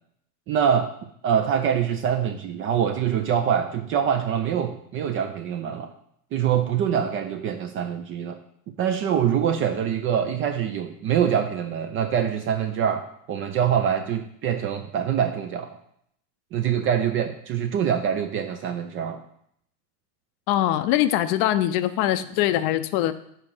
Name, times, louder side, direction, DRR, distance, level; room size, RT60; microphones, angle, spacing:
voice 1, 0.5-0.9 1.2-5.9 6.3-8.4 8.7-13.0 13.3-15.7 16.5-19.2, right 8 dB, 30° right, 7 dB, 0.3 m, -24 dB
voice 2, 20.5-23.1, left 13 dB, 50° left, 12 dB, 0.5 m, -22 dB
5.6 x 3.9 x 5.9 m, 0.71 s
hypercardioid pair, 95°, 49 cm